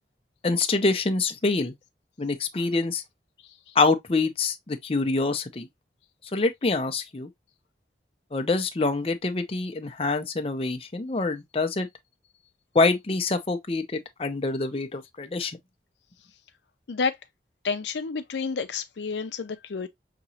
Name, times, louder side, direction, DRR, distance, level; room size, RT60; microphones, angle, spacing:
voice 1, 0.4-1.7 2.2-3.0 3.7-5.7 6.3-7.3 8.3-11.9 12.7-15.6, left 3 dB, 30° left, 0.6 m, -25 dB
voice 2, 17.6-19.9, left 5 dB, 75° left, 0.5 m, -30 dB
5.9 x 3.0 x 2.7 m
head